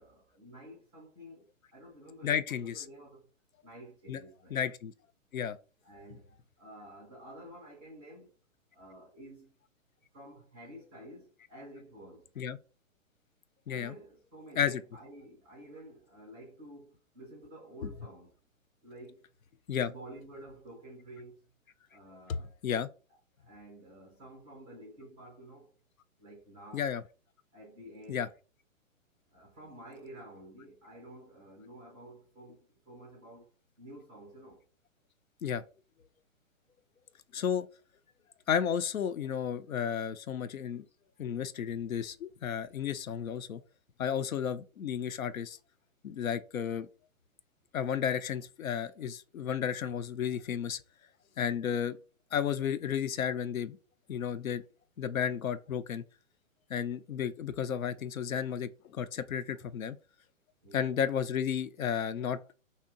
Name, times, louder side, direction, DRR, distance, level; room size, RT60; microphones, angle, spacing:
voice 1, 0.0-3.3 3.6-4.7 5.8-8.3 8.7-9.6 10.1-12.3 13.7-18.4 18.8-19.3 19.8-21.5 21.9-22.5 23.4-25.8 26.2-26.9 27.5-28.3 29.3-33.5 33.8-34.6 60.6-61.0, right 1 dB, 5° right, 0.4 m, -51 dB
voice 2, 2.2-2.9 4.1-4.2 4.5-4.9 5.3-5.6 12.4-12.6 13.7-13.9 14.6-14.8 19.7-19.9 22.6-22.9 26.7-27.0 28.1-28.3 35.4-35.6 37.3-37.7 38.5-40.9 41.2-43.6 44.0-45.6 46.0-46.9 47.7-50.8 51.4-52.0 52.3-53.8 54.1-54.6 55.0-56.0 56.7-60.0 60.7-62.4, left 8 dB, 90° left, 0.5 m, -32 dB
2.8 x 2.1 x 3.6 m
figure-of-eight pair, 125°, 40 cm